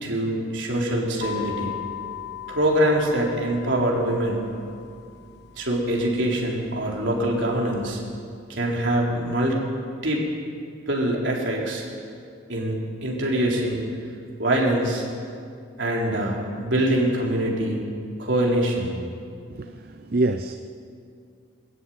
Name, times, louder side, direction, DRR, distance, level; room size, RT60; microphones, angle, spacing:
voice 1, 0.0-1.7 2.5-4.5 5.6-8.0 8.5-9.6 10.0-10.2 10.9-11.8 12.5-13.8 14.4-15.0 15.8-17.9 18.2-18.9, right 1 dB, 65° right, -2 dB, 4.2 m, -24 dB
sound 1, 1.2-8.2, left 10 dB, 55° left, 1.6 m, -39 dB
voice 2, 19.5-20.6, right 2 dB, 50° right, 8 dB, 0.6 m, -26 dB
20.5 x 13.5 x 9.4 m, 2.4 s
head